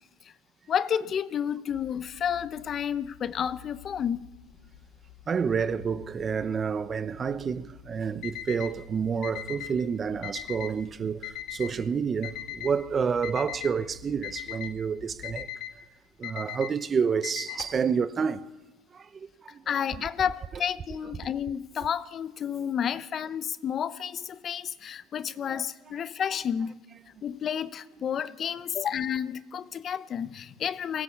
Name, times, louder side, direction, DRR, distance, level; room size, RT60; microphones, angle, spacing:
voice 1, 0.7-4.2 19.7-26.8 27.2-31.0, left 8 dB, 30° left, 0.7 m, -31 dB
sound 1, 1.7-15.5, left 10 dB, 90° left, 2.8 m, -53 dB
voice 2, 5.3-15.5 16.2-18.5 18.9-19.6 25.5-25.6, right 6 dB, 25° right, 0.7 m, -29 dB
Alarm, 8.2-8.7 9.2-9.7 10.2-10.7 11.2-11.7 12.2-12.7 13.2-13.7 14.2-14.7 15.2-15.7 16.2-16.7 17.2-17.8, left 13 dB, 55° left, 2.3 m, -37 dB
23.0 x 18.5 x 8.5 m
cardioid pair, 145°, 0 cm